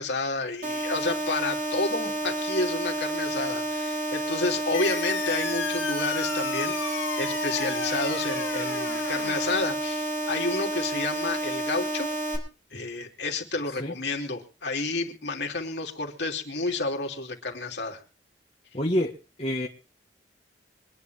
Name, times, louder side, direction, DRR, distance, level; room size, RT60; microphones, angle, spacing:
voice 1, 0.0-12.1 12.7-18.0, left 3 dB, 65° left, 2 dB, 3.1 m, -30 dB
sound 1, 0.6-12.4, right 1 dB, 40° right, 4.0 m, -30 dB
sound 2, 4.7-9.7, left 6 dB, 85° left, 1.7 m, -34 dB
voice 2, 18.7-19.1 19.4-19.7, left 1 dB, 35° left, -1 dB, 1.6 m, -26 dB
24.5 x 9.9 x 3.5 m, 0.35 s
head